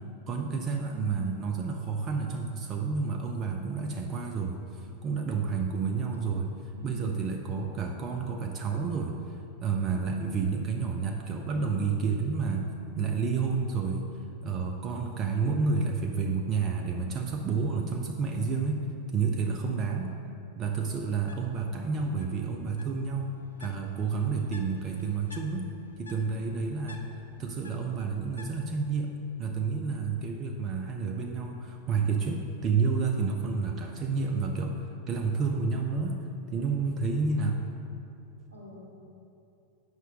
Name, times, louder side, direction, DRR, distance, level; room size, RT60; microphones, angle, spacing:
voice 1, 0.3-12.7 13.0-14.1 14.4-18.8 19.1-20.1 20.6-23.3 23.6-25.7 26.0-27.0 27.4-29.1 29.4-37.6, right 4 dB, 30° right, 2 dB, 0.5 m, -30 dB
voice 2, 0.9-1.3 6.7-7.2 19.3-19.4 26.3-27.1 38.5-38.8, left 1 dB, 80° right, -3 dB, 1.3 m, -48 dB
Bird, 21.1-28.9, left 2 dB, 80° left, 0.5 m, -53 dB
8.1 x 5.5 x 3.6 m, 2.7 s
figure-of-eight pair, 90°, 0 cm